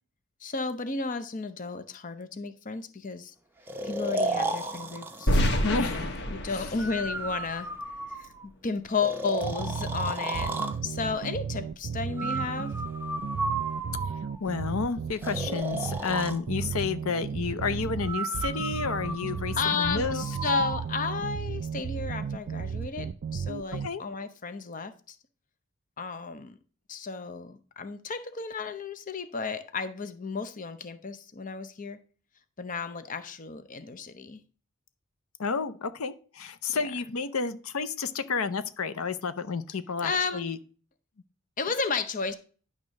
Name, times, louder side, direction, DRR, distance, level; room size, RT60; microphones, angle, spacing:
voice 1, 0.4-3.3 3.8-5.4 5.7-7.7 8.2-8.3 8.6-10.5 10.8-12.7 19.5-24.9 26.0-26.6 26.9-32.0 32.6-34.4 36.7-36.9 40.0-40.4 41.6-42.3, left 4 dB, 40° left, 11 dB, 0.7 m, -33 dB
Breathing, 3.7-5.5 6.8-8.5 9.0-10.8 12.2-14.4 15.2-16.4 18.0-20.9, right 2 dB, 10° right, 0.8 m, -34 dB
sound 1, 5.3-8.2, equal, 55° left, 1.2 m, -28 dB
voice 2, 5.6-6.1 6.5-6.7 14.4-20.2 23.8-24.0 35.4-40.6, left 5 dB, 80° left, 13 dB, 0.7 m, -31 dB
sound 2, 9.4-23.9, right 6 dB, 50° right, 0.3 m, -34 dB
10.5 x 3.7 x 6.4 m, 0.40 s
head